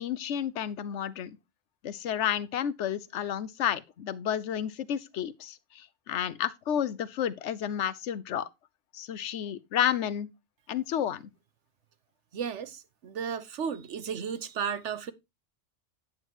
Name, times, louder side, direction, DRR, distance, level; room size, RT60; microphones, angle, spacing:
voice 1, 0.0-1.4 1.8-8.5 8.9-10.3 10.7-11.3, left 9 dB, 90° left, 1.0 m, -31 dB
voice 2, 12.3-15.1, right 7 dB, 80° right, 1.2 m, -34 dB
9.1 x 9.0 x 3.0 m
omnidirectional pair, 1.2 m